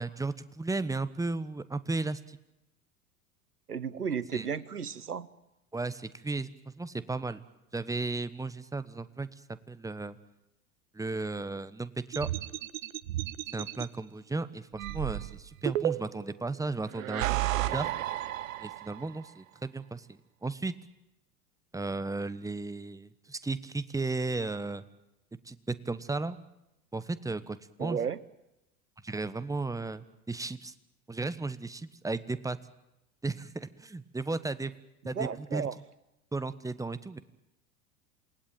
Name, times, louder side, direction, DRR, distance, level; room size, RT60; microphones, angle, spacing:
voice 1, 0.0-2.4 4.3-4.5 5.7-6.5 6.8-7.4 7.7-9.3 9.7-10.2 10.9-12.3 13.5-17.4 17.7-17.9 18.6-20.7 21.7-24.8 25.4-26.4 26.9-28.0 29.0-30.7 31.1-32.6 33.2-34.7 35.0-35.7 36.3-37.2, right 3 dB, 5° right, 14 dB, 1.1 m, -34 dB
voice 2, 3.7-5.3 27.8-28.2 35.1-35.7, right 6 dB, 85° right, 18 dB, 1.0 m, -33 dB
sound 1, 12.1-13.9 14.8-16.3 16.9-19.1, right 15 dB, 60° right, 1.1 m, -32 dB
28.0 x 20.0 x 9.0 m, 0.92 s
figure-of-eight pair, 80°, 44 cm